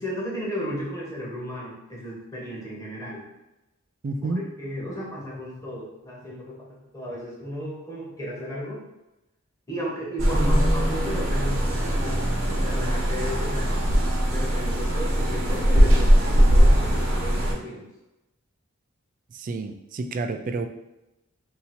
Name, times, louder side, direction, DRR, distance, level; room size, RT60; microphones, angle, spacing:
voice 1, 0.0-3.2 4.6-8.8 9.7-17.8, equal, 15° left, -4 dB, 1.1 m, -34 dB
voice 2, 4.0-4.4 19.3-20.7, right 3 dB, 40° right, 8 dB, 0.3 m, -29 dB
sound 1, 10.2-17.5, equal, 70° right, 1.0 m, -20 dB
2.8 x 2.7 x 4.1 m, 0.96 s
head